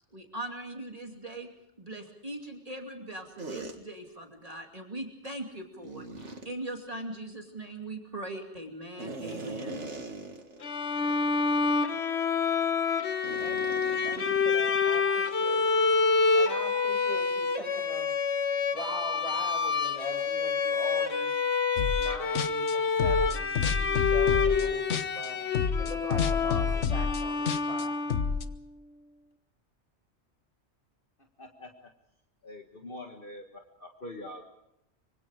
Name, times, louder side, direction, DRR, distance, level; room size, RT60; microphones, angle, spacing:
voice 1, 0.1-1.5 1.8-9.8, right 1 dB, 30° right, 2 dB, 2.7 m, -40 dB
sound 1, 3.4-3.7 5.8-6.5 9.0-10.7 11.1-11.2 11.8-12.0 13.2-15.0, right 2 dB, 85° right, 2.5 m, -41 dB
Bowed string instrument, 10.6-28.4, left 5 dB, 70° left, 1.5 m, -27 dB
voice 2, 13.4-15.8 16.3-18.1 18.7-21.4 21.9-25.4 25.8-27.9, equal, 30° left, 3 dB, 6.0 m, -42 dB
sound 2, 21.8-22.1 22.4-25.3 25.5-28.4, left 6 dB, 85° left, 1.3 m, -29 dB
voice 3, 31.4-31.9 32.4-33.4 33.8-34.4, left 1 dB, 50° left, 3 dB, 1.9 m, -44 dB
25.5 x 24.5 x 5.0 m, 0.82 s
omnidirectional pair, 1.2 m